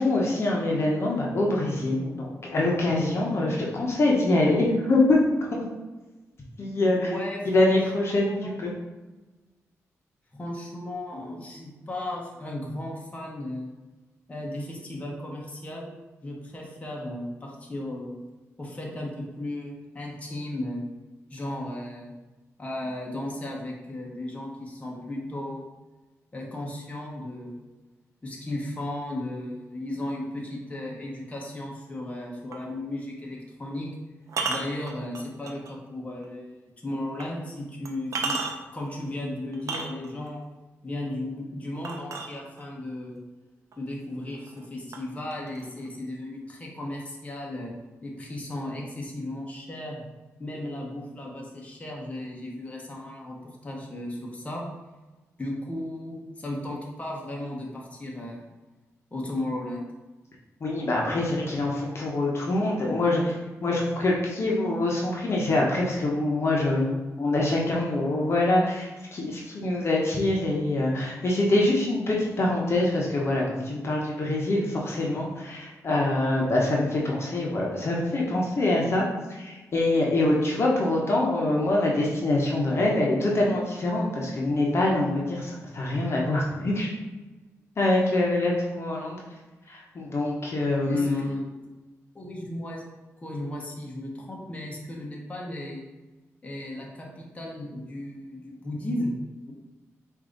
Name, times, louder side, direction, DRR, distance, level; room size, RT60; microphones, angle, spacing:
voice 1, 0.0-5.6 6.6-7.1 7.5-8.7 60.6-86.9 87.8-89.2 89.7-91.4, left 2 dB, 50° left, -3 dB, 1.0 m, -25 dB
voice 2, 6.8-7.4 7.7-7.8 8.1-8.5 10.3-13.7 14.3-15.9 16.2-18.2 18.6-20.8 21.3-22.1 22.6-25.6 26.3-27.6 28.2-33.9 34.5-36.6 36.8-38.4 38.7-40.4 40.8-43.2 43.8-47.7 48.0-50.0 50.4-53.4 53.6-54.6 55.4-58.5 59.1-59.9 90.8-91.5 92.1-92.8 93.2-95.8 96.4-99.5, left 1 dB, 25° left, -2 dB, 1.0 m, -35 dB
sound 1, 32.5-32.7 34.3-35.7 36.2-36.3 37.2-37.3 37.9-38.8 39.5-40.3 41.8-42.8 43.7-43.8 44.2-44.7 44.9-45.9, right 4 dB, 65° right, 0.6 m, -32 dB
4.7 x 2.7 x 3.9 m, 1.1 s
cardioid pair, 75°, 6 cm